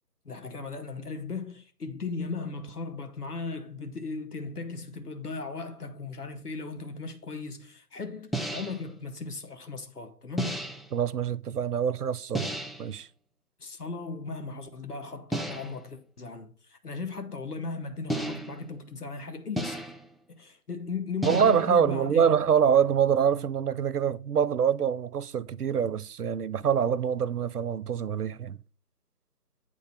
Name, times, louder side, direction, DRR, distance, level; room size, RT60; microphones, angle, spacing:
voice 1, 0.2-10.6 13.6-19.8 20.3-22.3, left 4 dB, 70° left, 1.1 m, -37 dB
sound 1, 8.3-8.9 10.4-10.9 12.3-12.9 15.3-15.9 18.1-18.7 19.6-20.1 21.2-21.8, right 1 dB, ahead, 0.3 m, -33 dB
voice 2, 10.9-12.5 12.8-13.1 21.2-28.6, right 7 dB, 75° right, 0.5 m, -25 dB
8.5 x 3.8 x 5.0 m
figure-of-eight pair, 155°, 47 cm